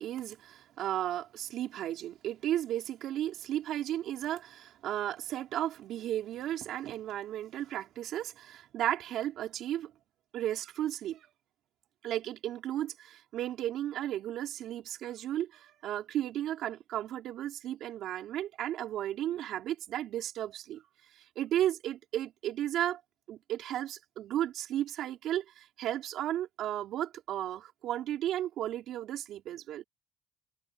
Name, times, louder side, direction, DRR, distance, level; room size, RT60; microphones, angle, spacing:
voice 1, 0.0-9.9 10.3-11.3 12.0-20.8 21.1-23.0 23.3-29.8, right 12 dB, 65° right, 5.0 m, -34 dB
cardioid pair, 150°, 0 cm